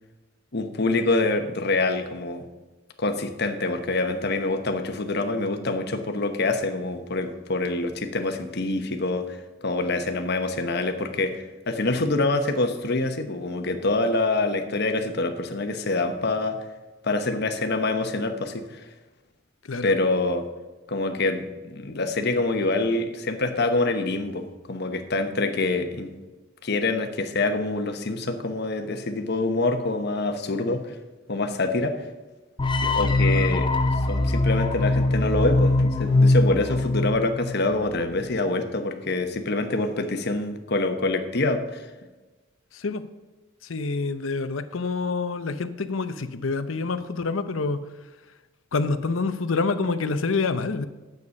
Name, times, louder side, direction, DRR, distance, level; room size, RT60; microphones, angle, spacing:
voice 1, 0.5-2.4 3.0-9.4 9.6-16.6 17.0-18.8 19.8-20.5 20.9-21.4 21.7-26.1 26.6-30.9 31.3-32.1 32.8-33.7 34.1-41.9, left 2 dB, 55° left, 7 dB, 1.1 m, -26 dB
sound 1, 32.6-37.7, left 2 dB, 25° left, 0.7 m, -22 dB
voice 2, 43.6-47.8 48.7-50.8, left 4 dB, 85° left, 11 dB, 0.7 m, -27 dB
9.8 x 8.1 x 5.3 m, 1.2 s
head